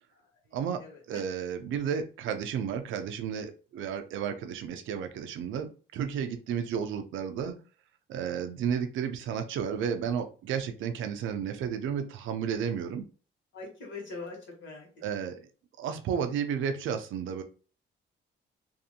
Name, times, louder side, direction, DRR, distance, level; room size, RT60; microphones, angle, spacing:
voice 1, 0.5-7.6 8.1-13.1 15.0-15.5 15.8-17.4, right 7 dB, 80° right, 8 dB, 0.5 m, -32 dB
voice 2, 13.5-14.9, left 3 dB, 70° left, -2 dB, 1.5 m, -42 dB
2.6 x 2.5 x 2.7 m, 0.38 s
cardioid pair, 90°, 20 cm